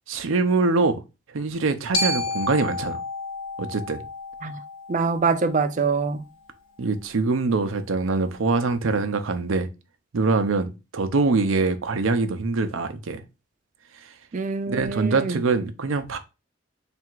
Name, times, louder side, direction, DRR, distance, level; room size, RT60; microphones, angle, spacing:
voice 1, 0.1-1.0 1.3-3.0 3.6-4.0 6.8-9.7 10.1-13.2 14.7-16.2, right 3 dB, 85° right, 0.6 m, -24 dB
Glockenspiel, 1.9-6.1, left 2 dB, 75° left, 0.9 m, -31 dB
voice 2, 4.9-6.2 14.3-15.4, right 4 dB, 40° right, 0.4 m, -24 dB
3.4 x 2.5 x 4.5 m
head